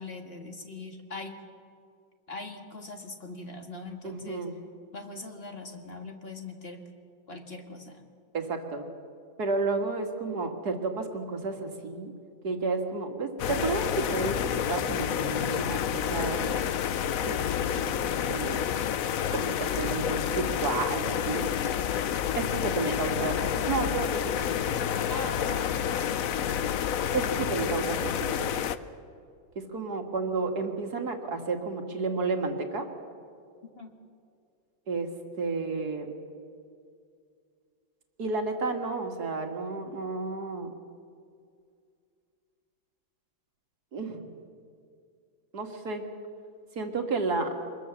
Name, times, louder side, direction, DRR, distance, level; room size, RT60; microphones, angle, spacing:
voice 1, 0.0-1.3 2.3-4.4 4.9-6.8 7.3-8.1 22.6-23.0 25.1-26.2 33.8-33.9, left 2 dB, 30° left, 3 dB, 1.8 m, -41 dB
voice 2, 4.0-4.6 8.3-8.9 9.4-12.1 12.4-16.7 17.2-17.4 17.7-18.6 19.3-21.5 22.4-24.6 27.1-28.6 29.6-32.9 34.9-35.1 35.4-36.1 38.2-40.7 43.9-44.3 45.5-46.0 46.8-47.5, right 3 dB, 50° right, 4 dB, 2.4 m, -31 dB
sound 1, 13.4-28.8, left 9 dB, 65° left, 0.8 m, -29 dB
24.5 x 20.5 x 7.2 m, 2.3 s
omnidirectional pair, 2.2 m